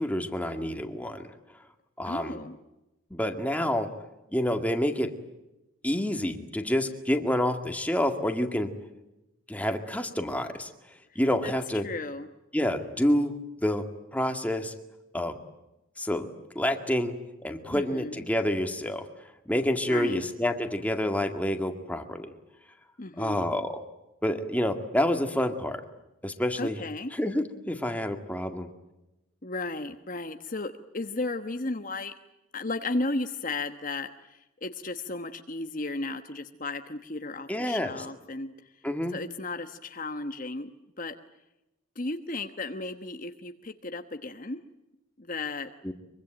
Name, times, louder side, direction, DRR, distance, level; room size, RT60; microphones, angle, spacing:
voice 1, 0.0-1.3 2.0-2.4 3.1-3.9 4.3-5.1 5.8-8.7 9.5-11.9 12.5-13.3 13.6-14.7 15.1-15.4 16.0-16.3 16.6-17.1 17.4-19.1 19.5-22.3 23.2-23.8 24.2-25.8 26.2-26.8 27.1-28.7 37.5-37.9 38.8-39.2 45.8-45.9, left 1 dB, 5° left, 5 dB, 2.1 m, -28 dB
voice 2, 2.0-2.6 11.1-11.5 11.8-12.3 17.7-18.2 19.9-20.2 23.0-23.5 26.6-27.1 29.4-32.1 32.5-38.8 39.1-40.7 41.0-41.1 41.9-44.6 45.2-45.7, left 2 dB, 40° left, 7 dB, 1.2 m, -34 dB
24.5 x 24.0 x 9.0 m, 0.95 s
head